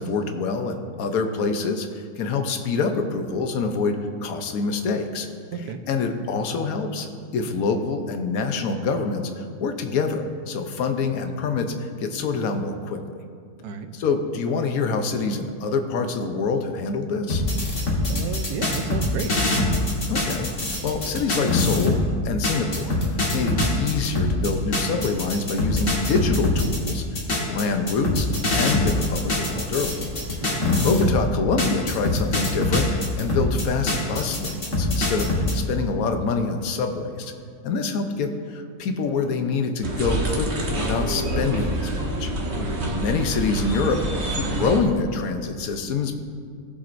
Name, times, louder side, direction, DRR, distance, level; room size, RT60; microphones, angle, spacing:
voice 1, 0.0-4.0 4.2-5.3 5.9-7.1 7.3-13.2 13.9-17.4 20.1-22.0 22.2-23.0 23.3-30.0 30.4-37.3 37.6-42.3 42.9-44.0 44.3-46.1, left 4 dB, 70° left, 6 dB, 1.2 m, -26 dB
sound 1, 17.3-22.1 22.4-31.2 31.6-35.5, left 2 dB, 50° left, 1.9 m, -24 dB
voice 2, 18.1-19.3 30.4-30.6 42.6-42.9, right 6 dB, 85° right, 7 dB, 1.3 m, -32 dB
sound 2, 39.8-44.8, right 1 dB, 45° right, 1.5 m, -27 dB
19.5 x 7.4 x 2.6 m, 2.2 s
omnidirectional pair, 1.6 m